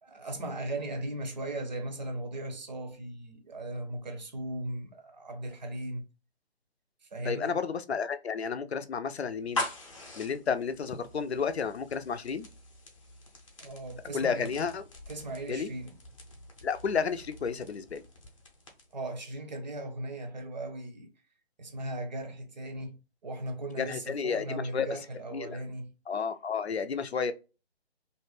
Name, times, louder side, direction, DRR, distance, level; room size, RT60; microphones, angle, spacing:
voice 1, 0.0-6.0 7.1-7.6 13.6-14.5 15.1-16.0 18.9-21.1 21.6-25.9, right 1 dB, 45° right, 0.6 m, -37 dB
voice 2, 7.2-9.7 10.2-12.5 14.1-14.8 15.5-15.7 16.6-18.0 23.8-24.9 25.3-25.6 26.1-27.3, left 6 dB, 75° left, 0.5 m, -31 dB
sound 1, 9.3-19.0, left 2 dB, 30° left, 0.6 m, -43 dB
2.5 x 2.1 x 3.2 m
figure-of-eight pair, 140°, 32 cm